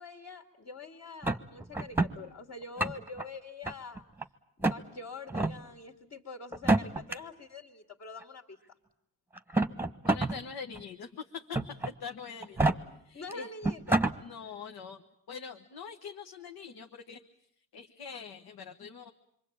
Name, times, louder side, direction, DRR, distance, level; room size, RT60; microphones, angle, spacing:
voice 1, 0.0-4.0 4.6-8.6 13.1-14.1, left 3 dB, 45° left, 3 dB, 2.6 m, -45 dB
sound 1, 1.2-2.1 2.6-3.2 3.6-4.2 4.6-4.8 5.3-5.5 6.5-7.1 8.2-8.3 9.4-10.3 10.7-10.8 11.5-11.9 12.4-12.7 13.3-13.4 13.6-14.1, right 2 dB, 5° right, 1.2 m, -27 dB
voice 2, 10.1-12.8 13.0-13.5 14.2-17.2 17.7-19.1, left 6 dB, 70° left, 5 dB, 1.5 m, -43 dB
27.0 x 24.0 x 8.8 m, 0.73 s
cardioid pair, 110°, 39 cm